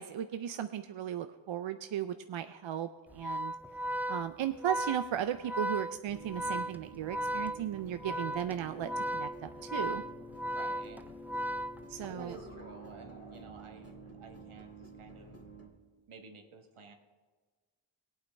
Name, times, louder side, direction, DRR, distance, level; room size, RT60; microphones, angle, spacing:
voice 1, 0.0-3.5 4.1-10.0 11.9-12.4, right 10 dB, 70° right, 9 dB, 0.6 m, -36 dB
Organ, 3.1-12.3, equal, 5° right, 0.3 m, -36 dB
sound 1, 6.1-15.7, right 1 dB, 30° left, 2.4 m, -49 dB
voice 2, 10.5-11.0 12.1-15.4 16.1-16.9, right 5 dB, 90° right, 4 dB, 1.3 m, -52 dB
18.0 x 8.8 x 3.3 m, 1.4 s
cardioid pair, 45°, 48 cm